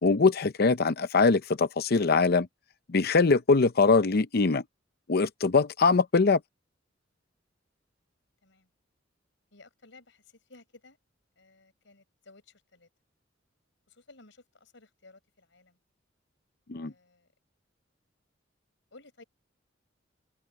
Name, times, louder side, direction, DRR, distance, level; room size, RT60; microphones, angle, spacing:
voice 1, 0.0-2.5 2.9-4.6 5.1-6.4 16.7-16.9, left 4 dB, 55° left, 0.6 m, -22 dB
voice 2, 9.5-11.0 11.4-12.9 13.9-15.8 16.7-17.3 18.9-19.2, left 3 dB, 70° left, 6.3 m, -56 dB
head